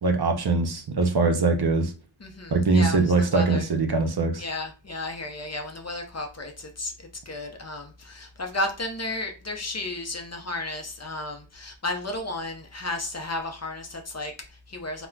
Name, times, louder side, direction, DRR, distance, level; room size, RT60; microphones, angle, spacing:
voice 1, 0.0-1.9 2.5-4.4, right 3 dB, 55° right, 0.6 m, -22 dB
voice 2, 2.2-3.6 4.4-15.1, left 2 dB, 35° left, 0.6 m, -33 dB
3.6 x 2.2 x 2.2 m
wide cardioid pair, 45°, 47 cm